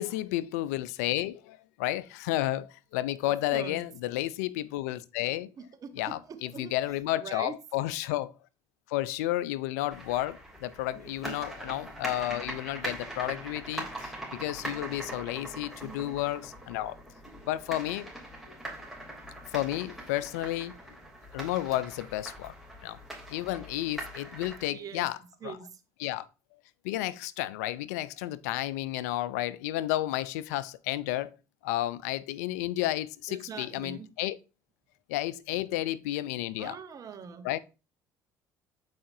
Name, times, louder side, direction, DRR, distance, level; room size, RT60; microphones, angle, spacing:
voice 1, 0.0-5.5 6.0-8.3 8.9-17.0 17.5-18.1 18.5-18.6 19.5-20.7 21.3-22.5 22.8-23.0 23.3-25.2 25.4-25.5 26.0-26.3 26.8-31.3 31.6-34.4 35.1-36.7 37.4-37.6, left 15 dB, 85° left, 0.4 m, -32 dB
voice 2, 3.2-3.8 5.6-7.5 10.9-11.4 15.8-16.2 24.7-25.1 25.4-25.8 33.3-34.1 36.6-37.5, right 6 dB, 45° right, 1.1 m, -43 dB
sound 1, 9.9-24.7, right 1 dB, ahead, 2.9 m, -42 dB
7.4 x 4.8 x 2.7 m
supercardioid pair, 75°, 8 cm